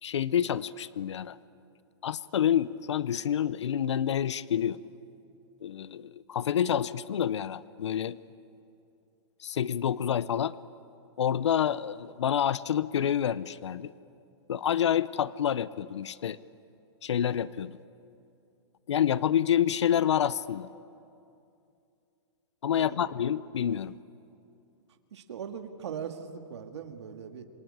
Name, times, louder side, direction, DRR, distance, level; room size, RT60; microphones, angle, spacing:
voice 1, 0.0-1.4 2.0-4.8 5.6-8.2 9.4-10.6 11.2-13.9 14.5-16.4 17.0-17.8 18.9-20.7 22.6-23.9, left 9 dB, 85° left, 18 dB, 0.7 m, -28 dB
voice 2, 22.7-23.1 25.1-27.5, right 7 dB, 75° right, 6 dB, 2.0 m, -40 dB
27.0 x 24.0 x 8.7 m, 2.6 s
hypercardioid pair, 150°, 15 cm